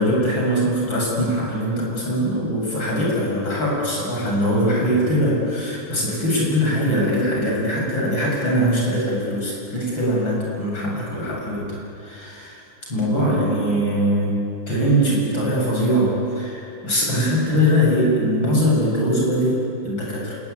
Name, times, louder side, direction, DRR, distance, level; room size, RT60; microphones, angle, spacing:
voice 1, 0.0-12.6 12.9-20.4, equal, 65° left, -3 dB, 8.4 m, -21 dB
28.0 x 19.5 x 9.6 m, 2.6 s
omnidirectional pair, 2.3 m